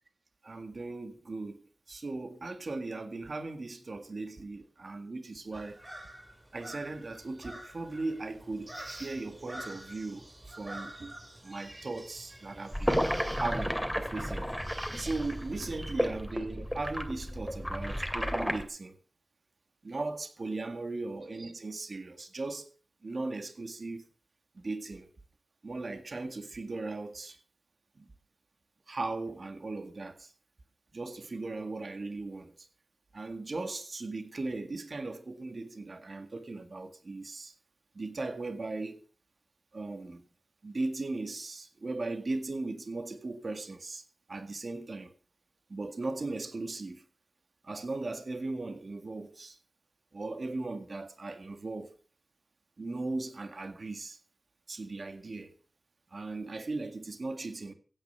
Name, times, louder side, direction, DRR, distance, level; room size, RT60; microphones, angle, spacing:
voice 1, 0.4-1.6 1.9-6.0 6.5-10.3 10.6-11.2 11.4-14.5 15.0-19.0 19.8-22.7 23.0-24.0 24.6-25.1 25.6-27.4 28.0-28.1 28.9-30.3 30.9-32.7 33.1-37.5 38.0-39.0 39.7-40.2 40.6-44.0 44.3-45.1 45.7-47.0 47.6-49.6 50.1-51.9 52.8-54.2 54.7-55.5 56.1-57.7, right 3 dB, 60° right, 1.8 m, -38 dB
sound 1, 5.5-15.9, right 1 dB, 20° right, 7.5 m, -47 dB
sound 2, 12.7-18.6, equal, ahead, 2.4 m, -32 dB
16.0 x 9.2 x 5.6 m
wide cardioid pair, 80°, 0 cm